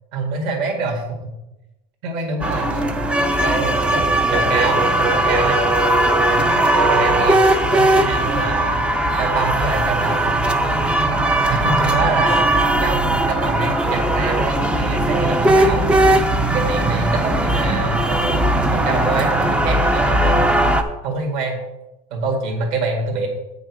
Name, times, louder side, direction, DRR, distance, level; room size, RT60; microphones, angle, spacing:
voice 1, 0.1-1.3 2.0-3.0 3.4-4.0 4.3-5.6 6.3-7.4 7.7-8.7 9.2-10.3 11.5-12.5 12.8-15.9 16.5-20.5 21.0-21.6 22.1-23.3, right 3 dB, 45° right, 2 dB, 2.0 m, -25 dB
sound 1, 2.4-20.8, right 1 dB, 5° right, 0.3 m, -18 dB
8.5 x 6.3 x 4.7 m, 0.97 s
supercardioid pair, 175°, 18 cm